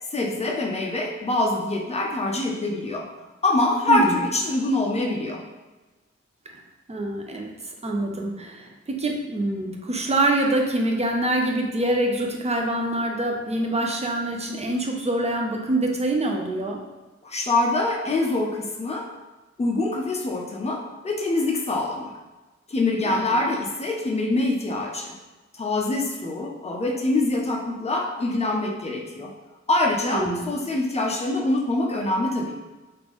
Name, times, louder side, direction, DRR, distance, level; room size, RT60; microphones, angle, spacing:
voice 1, 0.1-3.1 3.4-5.4 17.2-19.1 19.6-22.1 22.7-25.1 25.6-29.3 29.7-32.6, left 2 dB, 20° left, 0 dB, 0.5 m, -24 dB
voice 2, 6.9-16.8 23.1-23.3 30.1-30.6, right 1 dB, 20° right, 2 dB, 0.5 m, -25 dB
3.5 x 2.6 x 3.0 m, 1.2 s
wide cardioid pair, 80°, 29 cm